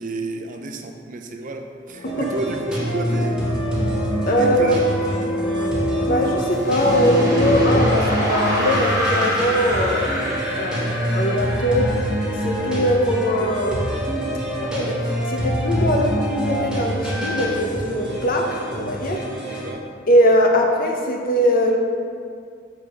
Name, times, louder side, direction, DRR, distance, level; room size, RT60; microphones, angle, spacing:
voice 1, 0.0-3.4 4.4-4.8 19.4-19.8, right 2 dB, 45° right, 4 dB, 0.6 m, -30 dB
sound 1, 1.9-7.8, left 1 dB, 75° left, 0.5 m, -27 dB
sound 2, 2.1-19.7, equal, 5° right, 1.4 m, -25 dB
voice 2, 4.3-4.8 6.0-12.0 12.4-13.9 14.6-19.3 20.1-21.8, equal, 50° left, 1 dB, 0.8 m, -21 dB
sound 3, 6.5-13.4, equal, 20° right, 1.4 m, -26 dB
4.9 x 4.7 x 6.2 m, 2.2 s
head